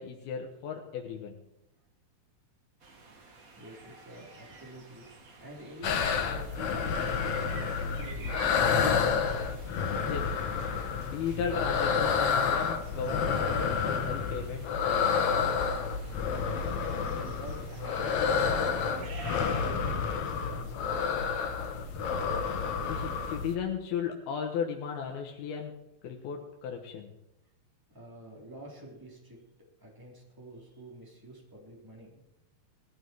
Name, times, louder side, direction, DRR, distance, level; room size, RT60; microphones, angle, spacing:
voice 1, 0.0-1.4 10.1-10.4 11.0-15.3 22.8-25.7 26.0-27.1, left 7 dB, 85° left, 1 dB, 3.3 m, -36 dB
sound 1, 2.8-19.6, right 3 dB, 40° right, 1.2 m, -50 dB
voice 2, 3.6-5.0 5.4-9.4 16.8-21.6 27.9-29.4 29.8-32.2, right 1 dB, 5° right, -2 dB, 3.7 m, -48 dB
sound 2, 5.8-23.6, left 6 dB, 60° left, 2.1 m, -29 dB
20.0 x 14.5 x 4.7 m, 0.86 s
omnidirectional pair, 4.3 m